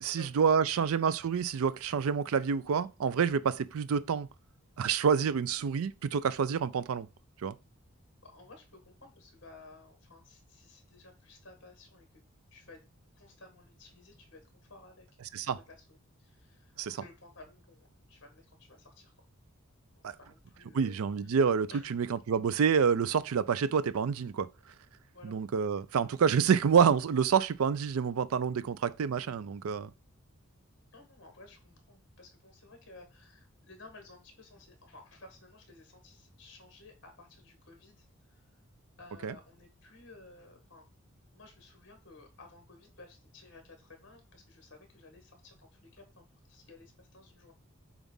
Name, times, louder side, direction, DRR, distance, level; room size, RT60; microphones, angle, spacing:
voice 1, 0.0-4.3 4.8-7.1 7.4-7.5 15.3-15.6 16.8-17.0 20.0-20.1 20.7-24.5 25.2-29.9 39.2-39.3, right 6 dB, 75° right, 0.4 m, -28 dB
voice 2, 8.2-12.1 12.5-12.8 13.2-14.4 14.7-15.1 15.5-19.1 19.9-20.9 21.7-21.9 25.1-25.4 30.9-38.5 39.0-40.8 41.3-47.5, left 3 dB, 55° left, 1.7 m, -55 dB
7.1 x 2.5 x 5.4 m
head